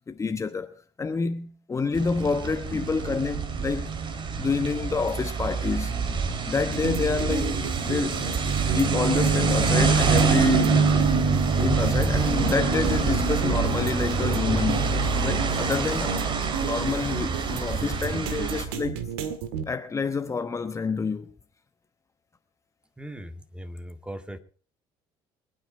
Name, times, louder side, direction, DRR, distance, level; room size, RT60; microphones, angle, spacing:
voice 1, 0.1-3.9 4.4-5.9 6.5-8.2 8.7-10.8 11.6-19.0 19.7-21.3, left 4 dB, 25° left, 1.1 m, -28 dB
sound 1, 1.9-18.6, right 5 dB, 45° right, 2.9 m, -25 dB
sound 2, 6.7-19.6, right 5 dB, 85° right, 1.8 m, -33 dB
voice 2, 23.0-24.4, equal, 10° right, 2.0 m, -39 dB
24.0 x 9.4 x 4.4 m
supercardioid pair, 80°, 12 cm